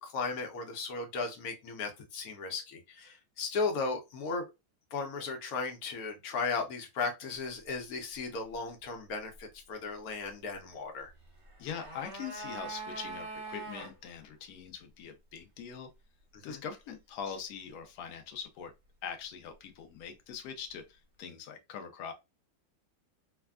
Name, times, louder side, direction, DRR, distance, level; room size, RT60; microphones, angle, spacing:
voice 1, 0.0-4.4 4.9-11.1 16.3-16.6, left 4 dB, 60° left, 1.0 m, -36 dB
sound 1, 11.3-13.9 14.2-14.3, right 3 dB, 35° right, 1.5 m, -42 dB
voice 2, 11.6-15.9 16.4-18.7 19.0-22.1, left 7 dB, 90° left, 0.8 m, -42 dB
3.3 x 2.2 x 2.3 m
omnidirectional pair, 2.2 m